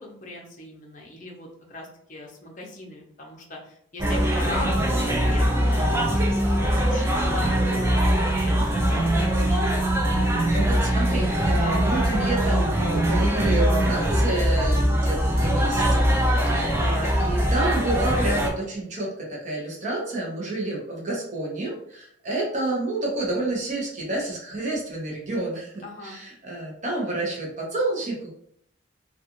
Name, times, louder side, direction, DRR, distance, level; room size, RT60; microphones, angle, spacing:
voice 1, 0.0-9.8 25.8-26.2, left 2 dB, 40° left, 0 dB, 0.6 m, -39 dB
sound 1, 4.0-18.5, right 1 dB, 15° right, 0.3 m, -22 dB
voice 2, 10.1-16.1 16.3-28.3, right 2 dB, 40° right, -3 dB, 0.8 m, -29 dB
2.4 x 2.3 x 2.8 m, 0.66 s
head